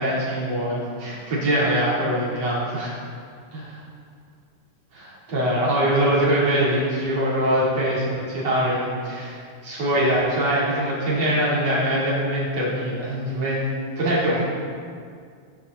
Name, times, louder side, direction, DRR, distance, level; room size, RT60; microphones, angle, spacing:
voice 1, 0.0-2.9 3.5-3.8 4.9-13.7 14.0-14.4, right 1 dB, 35° right, -8 dB, 3.8 m, -23 dB
17.0 x 10.5 x 4.1 m, 2.1 s
omnidirectional pair, 6.0 m